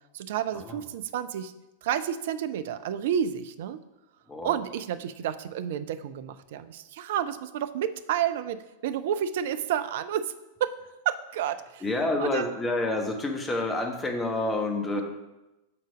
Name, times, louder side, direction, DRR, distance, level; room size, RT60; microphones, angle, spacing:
voice 1, 0.1-1.5 1.8-3.8 4.4-10.3 10.6-10.7 11.1-11.8 12.2-12.5, right 9 dB, 55° right, 12 dB, 0.4 m, -30 dB
voice 2, 11.8-15.0, left 2 dB, 15° left, 3 dB, 1.1 m, -28 dB
7.0 x 3.9 x 4.8 m, 0.98 s
figure-of-eight pair, 90°, 0 cm